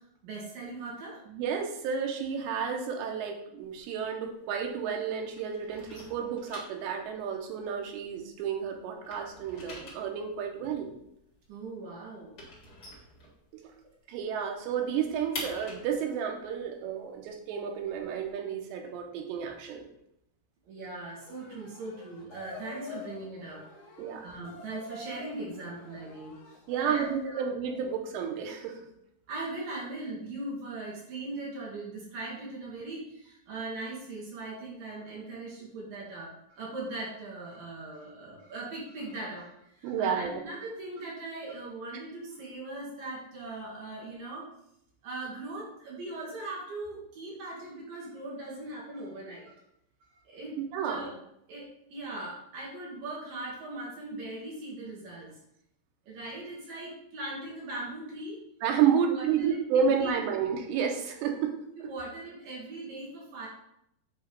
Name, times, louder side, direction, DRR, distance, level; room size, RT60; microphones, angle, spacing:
voice 1, 0.0-1.2 11.5-12.4 20.7-23.6 24.2-26.4 26.8-27.5 29.3-44.5 45.0-49.6 50.1-50.6 50.8-51.1 51.5-55.3 56.1-58.4 58.8-60.4 61.8-63.5, right 2 dB, 65° right, -4 dB, 2.8 m, -40 dB
voice 2, 1.3-10.9 13.5-13.7 14.1-19.9 24.0-24.2 26.7-28.7 39.8-40.4 50.7-51.1 58.6-61.5 61.8-61.9, right 7 dB, 90° right, 3 dB, 3.1 m, -31 dB
sound 1, 3.6-5.0 5.3-8.5 8.8-13.8 14.2-14.3 14.6-18.3, left 2 dB, 40° left, 1.5 m, -46 dB
sound 2, 21.2-27.3, left 3 dB, 65° left, 1.7 m, -46 dB
8.4 x 3.0 x 5.2 m, 0.79 s
omnidirectional pair, 4.8 m